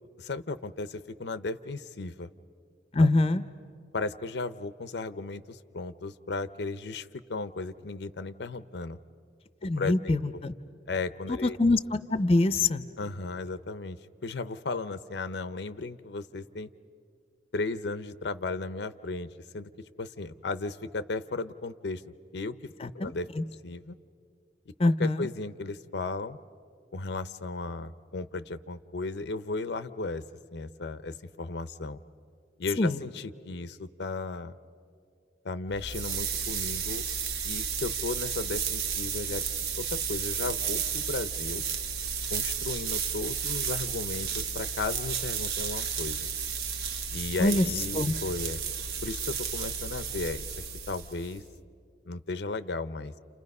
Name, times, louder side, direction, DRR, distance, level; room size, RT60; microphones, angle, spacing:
voice 1, 0.2-2.3 3.0-3.1 3.9-9.0 9.8-10.4 10.9-11.6 13.0-16.7 17.5-19.7 20.0-22.0 22.3-22.6 22.9-23.3 23.6-24.0 25.0-26.4 26.9-30.3 30.5-32.0 32.6-34.5 35.4-37.0 37.4-39.4 39.8-41.6 42.3-46.3 47.1-48.6 49.0-50.5 50.9-51.4 52.1-53.2, left 3 dB, 75° left, 13 dB, 0.6 m, -35 dB
voice 2, 2.9-3.4 9.6-10.5 11.3-12.9 22.8-23.4 24.8-25.3 32.8-33.0 47.4-47.7 47.9-48.1, left 2 dB, 35° left, 12 dB, 0.6 m, -25 dB
sound 1, 35.7-51.5, right 6 dB, 60° right, 1.1 m, -32 dB
30.0 x 28.5 x 5.4 m, 2.3 s
head